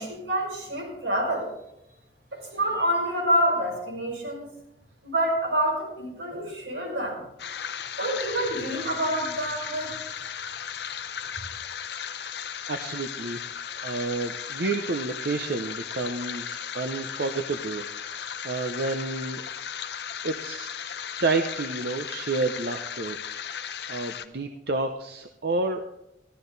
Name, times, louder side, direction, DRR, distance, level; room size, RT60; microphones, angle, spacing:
voice 1, 0.0-1.5 2.3-4.5 5.0-7.3 7.7-9.9, right 1 dB, 85° right, -2 dB, 5.7 m, -27 dB
sound 1, 7.4-24.3, left 8 dB, 65° left, 0.7 m, -36 dB
voice 2, 12.7-13.4 13.8-19.4 20.2-20.7 21.2-23.2 23.9-25.8, right 3 dB, 60° right, 5 dB, 0.7 m, -30 dB
14.0 x 12.0 x 4.0 m, 0.86 s
head